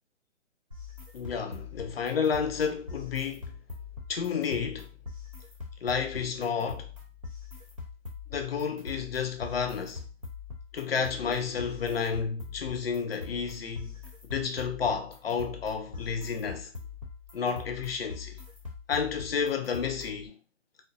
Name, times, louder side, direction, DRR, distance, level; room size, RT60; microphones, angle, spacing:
sound 1, 0.7-20.3, left 5 dB, 30° right, 0.4 m, -43 dB
voice 1, 1.1-3.5 4.1-4.9 5.8-6.9 8.3-10.0 10.7-13.9 14.2-16.7 17.3-18.4 18.9-20.4, left 6 dB, 50° left, 0.5 m, -31 dB
2.4 x 2.3 x 2.6 m
hypercardioid pair, 160°, 38 cm